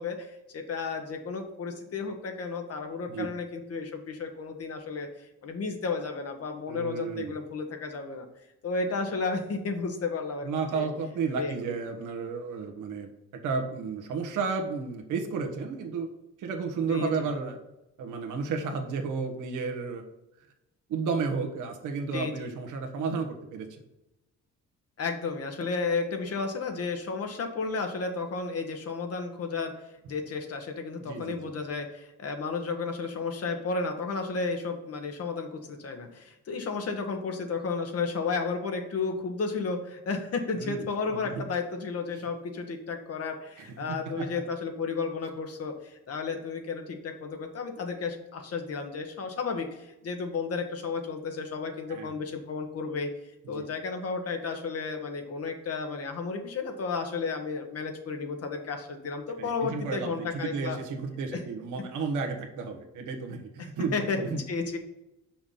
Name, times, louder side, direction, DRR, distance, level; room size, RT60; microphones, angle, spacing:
voice 1, 0.0-5.1 5.4-8.3 8.6-10.9 11.3-11.5 16.9-17.3 22.1-22.5 25.0-29.7 30.1-53.1 53.5-60.8 61.3-61.4 63.6-64.8, left 4 dB, 55° left, 5 dB, 1.4 m, -33 dB
voice 2, 6.7-7.3 10.4-16.1 16.4-17.6 18.0-20.0 20.9-23.7 31.0-31.5 40.5-41.4 43.6-44.4 51.9-52.1 53.5-53.7 59.4-64.4, right 5 dB, 80° right, 3 dB, 1.2 m, -32 dB
5.9 x 5.2 x 5.7 m, 0.92 s
cardioid pair, 90°, 30 cm